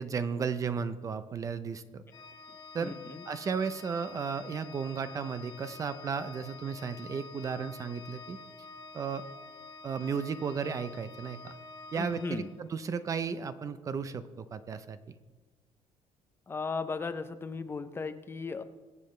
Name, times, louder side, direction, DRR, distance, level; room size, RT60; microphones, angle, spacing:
voice 1, 0.0-2.0 2.7-2.9 3.3-8.4 8.9-9.2 9.8-11.6 11.9-15.0, right 6 dB, 30° right, 12 dB, 0.5 m, -34 dB
Organ, 2.1-13.0, left 3 dB, 35° left, 0.9 m, -48 dB
voice 2, 2.8-3.2 11.9-12.5 16.5-18.6, left 4 dB, 20° left, 10 dB, 0.6 m, -36 dB
23.0 x 7.9 x 3.2 m, 1.3 s
cardioid pair, 170°, 12 cm